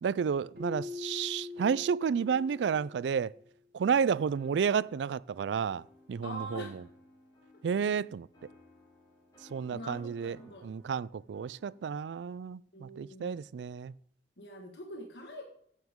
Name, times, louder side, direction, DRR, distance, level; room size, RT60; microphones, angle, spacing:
voice 1, 0.0-3.3 3.7-5.8 6.1-6.7 7.6-8.3 9.5-10.4 10.6-13.9, right 6 dB, 80° right, 0.3 m, -31 dB
Keyboard (musical), 0.6-3.4, left 3 dB, 55° right, 2.8 m, -43 dB
sound 1, 4.3-12.1, left 2 dB, 20° left, 6.0 m, -60 dB
voice 2, 6.2-6.8 9.7-10.7 12.7-13.4 14.4-15.4, equal, 75° left, 1.6 m, -44 dB
14.5 x 9.3 x 3.7 m
head